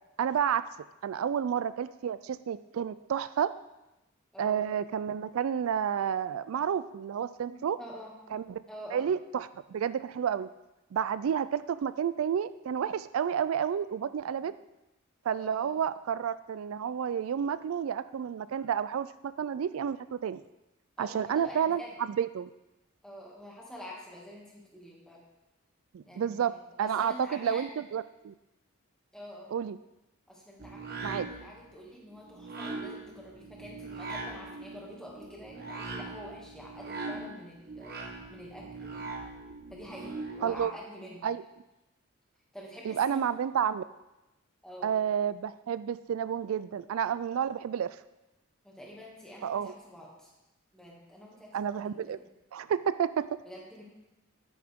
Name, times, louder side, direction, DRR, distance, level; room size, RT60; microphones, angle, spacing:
voice 1, 0.2-0.6 1.0-3.5 4.4-7.8 8.3-8.6 8.9-10.5 10.9-14.5 15.2-20.4 21.0-22.5 25.9-26.5 26.8-28.3 29.5-29.8 31.0-31.3 40.4-40.7 41.2-41.4 42.8-43.8 44.8-48.0 49.4-49.7 51.5-52.2 52.5-53.2, right 8 dB, 90° right, 15 dB, 0.3 m, -30 dB
voice 2, 4.3-4.6 7.5-8.1 8.7-9.1 15.4-15.8 21.0-22.0 23.0-25.2 26.0-27.7 29.1-29.5 30.3-39.1 39.7-41.3 42.5-43.3 44.6-44.9 48.6-50.3 50.7-52.2 53.5-53.8, equal, 5° left, -4 dB, 2.2 m, -47 dB
sound 1, 30.6-40.6, right 3 dB, 50° right, 1.2 m, -41 dB
9.5 x 9.4 x 3.6 m, 0.97 s
head